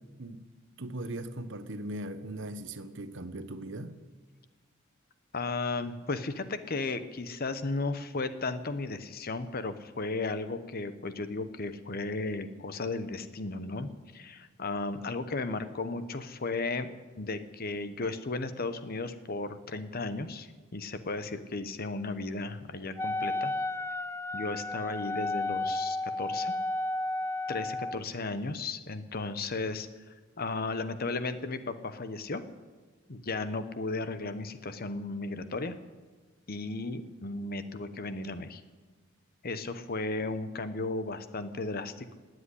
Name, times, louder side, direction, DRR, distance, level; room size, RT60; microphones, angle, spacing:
voice 1, 0.8-4.0, right 1 dB, 65° right, 11 dB, 1.0 m, -39 dB
voice 2, 5.3-23.5 24.3-26.5 27.5-29.9 30.4-32.4 33.1-35.7 36.5-38.6 39.4-42.1, left 3 dB, 50° left, 11 dB, 1.0 m, -35 dB
Wind instrument woodwind instrument, 23.0-28.0, left 2 dB, 10° left, 0.4 m, -32 dB
18.0 x 8.0 x 9.8 m, 1.4 s
head